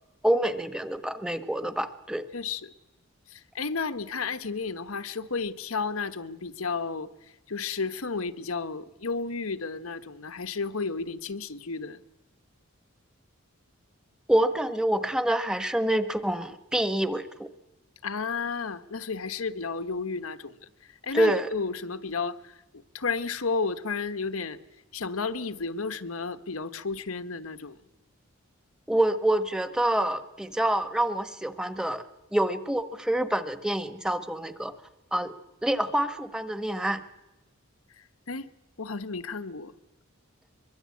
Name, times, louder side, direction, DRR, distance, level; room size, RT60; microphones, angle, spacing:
voice 1, 0.2-2.2 14.3-17.5 21.1-21.5 28.9-32.0 32.3-34.7 35.1-35.3 35.6-37.0, right 1 dB, 5° right, 1.2 m, -26 dB
voice 2, 2.3-2.7 3.3-7.1 7.5-12.0 18.0-20.6 21.0-22.5 22.9-24.6 24.9-27.8 38.3-38.4 38.8-39.7, left 4 dB, 80° left, 1.2 m, -32 dB
23.5 x 23.0 x 8.5 m
head